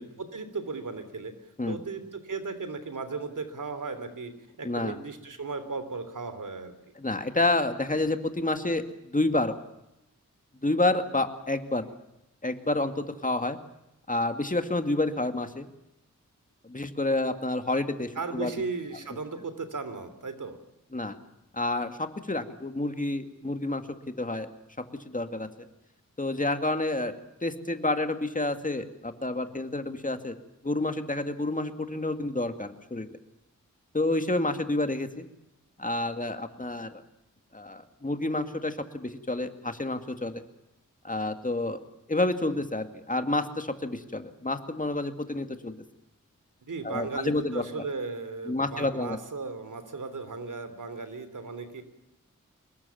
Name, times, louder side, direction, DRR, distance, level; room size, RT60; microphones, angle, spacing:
voice 1, 0.0-1.3 1.7-4.3 4.6-6.7 18.1-20.6 46.7-51.8, right 4 dB, 75° right, 11 dB, 3.3 m, -36 dB
voice 2, 4.6-5.0 7.0-9.5 10.6-11.9 12.4-13.6 14.1-15.7 16.6-18.5 20.9-21.2 21.5-23.9 24.2-24.5 25.0-25.5 26.2-27.1 27.4-30.3 30.6-33.2 33.9-35.3 35.8-37.0 37.5-40.4 41.0-41.8 42.1-45.8 46.8-47.6 48.5-49.2, left 2 dB, 25° left, 7 dB, 2.3 m, -29 dB
25.0 x 21.5 x 7.2 m, 0.88 s
wide cardioid pair, 65°, 31 cm